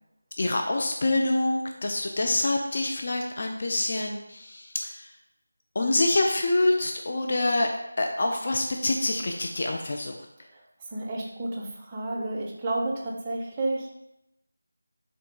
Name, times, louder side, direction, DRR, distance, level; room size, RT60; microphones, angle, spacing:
voice 1, 0.4-5.1 5.8-7.7 8.0-10.2, left 2 dB, 45° left, 2 dB, 0.3 m, -26 dB
voice 2, 10.9-13.9, right 2 dB, 20° right, -2 dB, 0.4 m, -31 dB
3.7 x 2.2 x 3.4 m, 0.85 s
figure-of-eight pair, 165°, 0 cm